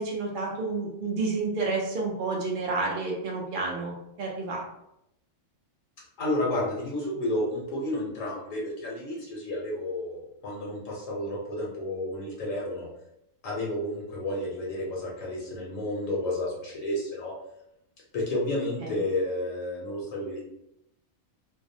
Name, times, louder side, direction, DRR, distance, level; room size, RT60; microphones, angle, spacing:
voice 1, 0.0-4.6 18.8-18.9, right 3 dB, 65° right, -2 dB, 0.5 m, -30 dB
voice 2, 6.2-12.9 13.4-17.3 18.1-20.4, left 1 dB, 75° left, -3 dB, 1.0 m, -31 dB
2.6 x 2.0 x 2.6 m, 0.81 s
omnidirectional pair, 1.4 m